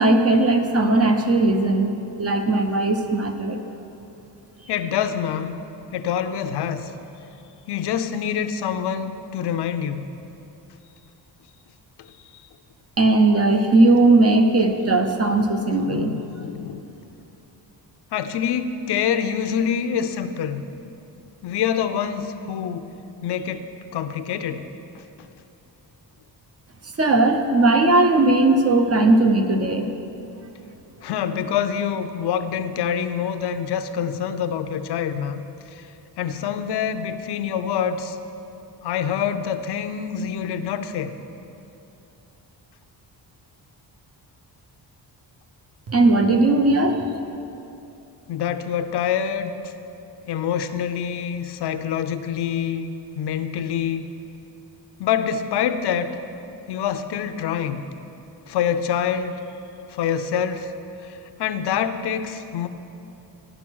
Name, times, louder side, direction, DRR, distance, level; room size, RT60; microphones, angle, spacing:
voice 1, 0.0-3.6 13.0-16.1 26.8-29.9 45.9-47.0, right 2 dB, 35° right, 5 dB, 0.7 m, -18 dB
voice 2, 4.7-5.6 5.9-6.9 7.7-10.1 12.0-12.1 12.3-12.4 15.8-16.9 18.1-20.6 21.4-22.9 23.2-23.6 23.9-24.6 31.0-35.4 35.7-35.9 36.2-38.2 38.8-41.1 48.3-49.7 50.3-54.1 55.0-56.1 56.7-57.8 58.5-59.4 59.9-60.7 61.0-62.7, left 8 dB, 70° left, 10 dB, 0.6 m, -26 dB
9.9 x 6.1 x 6.2 m, 2.8 s
wide cardioid pair, 125°, 42 cm